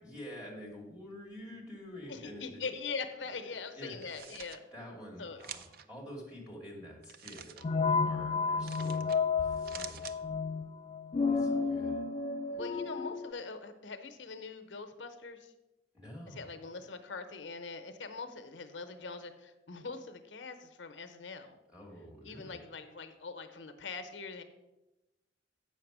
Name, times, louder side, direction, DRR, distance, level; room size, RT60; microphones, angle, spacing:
voice 1, 0.0-2.6 3.3-4.0 4.7-7.5 8.0-10.0 11.3-12.0 15.9-16.5 21.7-22.6, equal, 5° right, -3 dB, 2.3 m, -48 dB
voice 2, 2.1-4.6 5.2-5.4 12.5-15.5 16.3-21.6 22.2-24.4, left 4 dB, 90° left, 8 dB, 0.8 m, -42 dB
sound 1, 3.9-4.6 5.4-5.9 7.0-7.7 8.7-9.2 9.5-10.2, right 8 dB, 55° right, 0.5 m, -47 dB
sound 2, 7.6-13.3, left 4 dB, 35° left, 0.3 m, -31 dB
7.8 x 5.9 x 6.0 m, 1.0 s
head